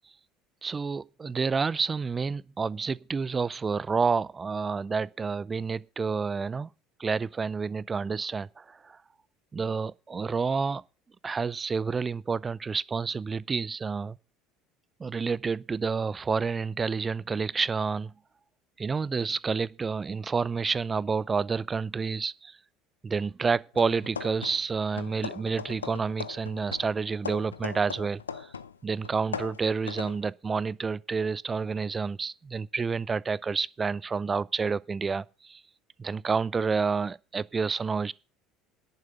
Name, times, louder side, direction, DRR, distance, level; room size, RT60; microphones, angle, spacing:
voice 1, 0.6-6.7 7.0-9.0 9.5-10.8 11.2-14.2 15.0-18.1 18.8-22.6 23.0-28.5 28.8-35.6 36.0-38.1, right 5 dB, 25° right, 0.5 m, -29 dB
sound 1, 23.7-24.7 25.0-28.8 29.0-30.2, left 6 dB, 80° left, 0.5 m, -39 dB
10.5 x 9.6 x 5.7 m
figure-of-eight pair, 65°, 0 cm